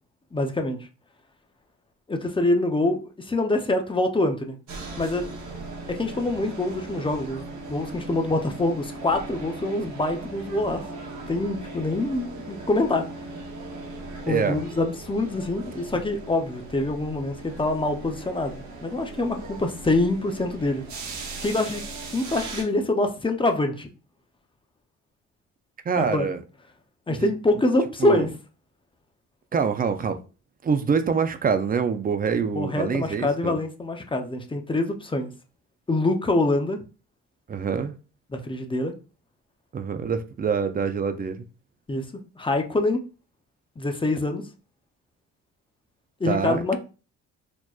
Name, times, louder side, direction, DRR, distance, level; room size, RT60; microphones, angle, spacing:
voice 1, 0.3-0.9 2.1-4.6 5.0-5.3 5.9-10.8 11.3-13.0 14.3-20.8 21.4-21.8 22.1-23.9 26.0-26.3 27.1-28.3 32.6-35.3 35.9-36.8 38.3-38.9 41.9-42.1 42.4-43.0 43.8-44.4 46.2-46.8, left 2 dB, 15° left, 0.6 m, -25 dB
sound 1, 4.7-22.6, right 3 dB, 70° right, 1.0 m, -38 dB
voice 2, 14.3-14.6 25.9-26.4 27.1-27.3 28.0-28.3 29.5-30.2 30.6-33.6 37.5-38.0 39.7-41.5 46.3-46.8, right 6 dB, 30° right, 0.5 m, -25 dB
4.3 x 2.8 x 2.4 m
cardioid pair, 90°, 30 cm